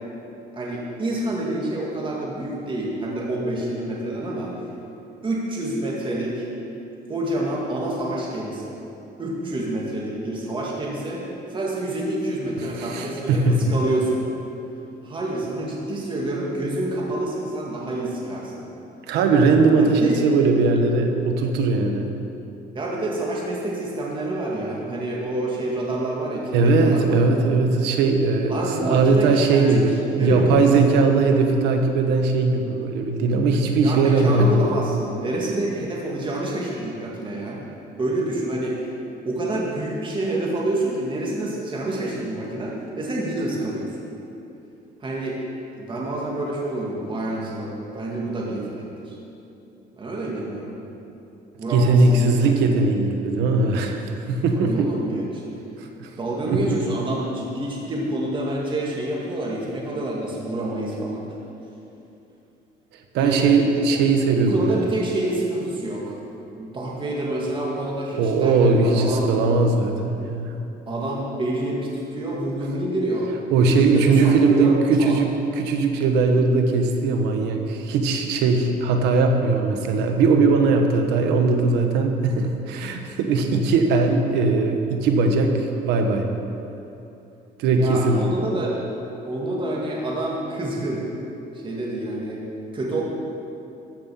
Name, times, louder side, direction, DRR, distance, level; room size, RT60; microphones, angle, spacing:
voice 1, 0.5-4.5 5.2-6.5 7.1-8.8 9.2-11.2 11.5-14.3 15.0-18.7 19.8-20.2 22.7-27.3 28.5-30.7 33.8-37.6 38.0-38.9 39.2-43.9 45.0-45.4 45.8-49.2 49.9-50.7 51.6-52.6 54.6-55.4 56.2-61.2 63.2-63.5 63.9-64.0 64.5-66.2 66.6-69.3 70.9-73.4 73.7-75.2 87.7-88.8 89.3-91.0 91.5-92.4 92.7-93.0, right 1 dB, 30° right, -3 dB, 1.9 m, -27 dB
voice 2, 12.6-13.8 19.1-22.1 26.5-29.9 30.2-34.5 51.7-54.9 55.8-56.1 56.5-56.8 63.1-64.8 68.1-70.5 73.5-75.3 75.6-86.3 87.6-88.4, right 3 dB, 90° right, 4 dB, 1.2 m, -19 dB
13.5 x 5.5 x 7.0 m, 2.8 s
cardioid pair, 110°, 17 cm